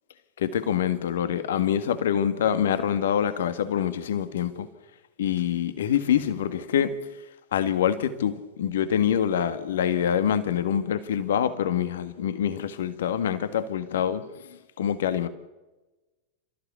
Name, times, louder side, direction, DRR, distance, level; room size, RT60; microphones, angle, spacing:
voice 1, 0.4-4.7 5.2-6.9 7.5-15.3, left 9 dB, 60° left, 1.8 m, -25 dB
29.0 x 14.5 x 7.1 m
figure-of-eight pair, 90°, 0 cm